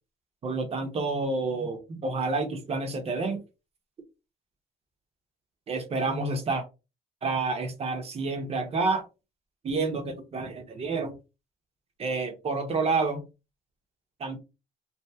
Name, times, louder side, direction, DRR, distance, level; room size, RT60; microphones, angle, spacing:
voice 1, 0.4-3.4 5.7-6.6 7.2-9.0 9.6-11.1 12.0-13.2 14.2-14.4, right 3 dB, 35° right, 6 dB, 0.8 m, -29 dB
2.8 x 2.5 x 2.3 m, 0.28 s
cardioid pair, 110°, 17 cm